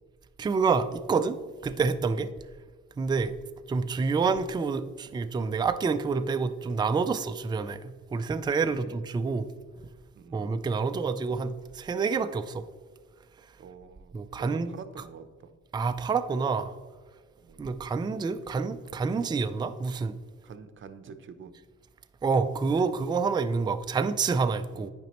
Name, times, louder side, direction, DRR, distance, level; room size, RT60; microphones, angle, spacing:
voice 1, 0.4-2.3 3.0-3.3 3.7-9.5 10.3-12.6 14.1-14.7 15.7-16.7 17.6-20.1 22.2-24.9, right 4 dB, 15° right, 0.3 m, -28 dB
voice 2, 8.6-9.0 10.1-10.5 13.6-15.5 17.4-17.7 20.4-21.5 24.7-24.9, right 5 dB, 40° right, 0.7 m, -47 dB
9.0 x 5.2 x 3.0 m
cardioid pair, 90°, 30 cm